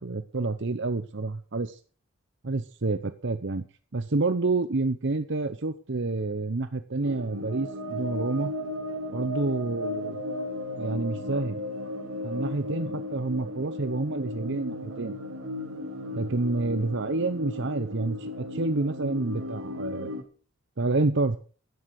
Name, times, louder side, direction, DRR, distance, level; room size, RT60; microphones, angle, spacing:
voice 1, 0.0-1.8 2.4-3.6 3.9-8.5 9.1-10.2 10.7-11.6 12.2-15.2 16.1-20.1 20.8-21.4, right 3 dB, 55° right, 10 dB, 0.8 m, -28 dB
sound 1, 7.0-20.2, left 1 dB, 80° right, 3.0 m, -35 dB
16.0 x 11.5 x 4.8 m, 0.39 s
head